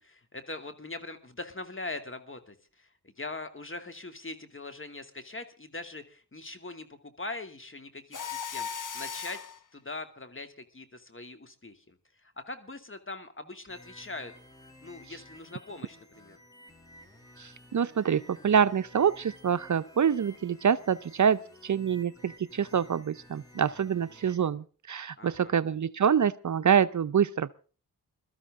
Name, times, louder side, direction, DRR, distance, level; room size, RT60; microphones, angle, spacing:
voice 1, 0.0-9.4 9.7-14.3 14.8-16.4 25.2-25.6, left 2 dB, 35° left, 2.5 m, -42 dB
Mechanisms, 8.1-9.6, left 7 dB, 55° left, 1.3 m, -36 dB
sound 1, 13.7-24.4, left 1 dB, 10° left, 6.3 m, -54 dB
voice 2, 17.4-27.5, right 8 dB, 50° right, 0.7 m, -26 dB
22.0 x 13.0 x 3.7 m
cardioid pair, 50°, 37 cm